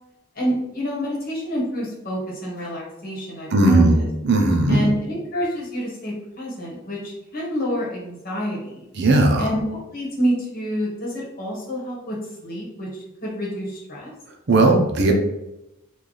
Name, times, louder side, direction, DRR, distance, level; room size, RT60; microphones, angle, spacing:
voice 1, 0.3-4.1 4.7-8.8 9.4-12.2 12.4-14.1, equal, 45° left, -4 dB, 1.1 m, -28 dB
voice 2, 3.5-4.8 9.0-9.5 14.5-15.1, right 2 dB, 55° right, 2 dB, 0.5 m, -17 dB
3.2 x 2.3 x 3.9 m, 0.89 s
head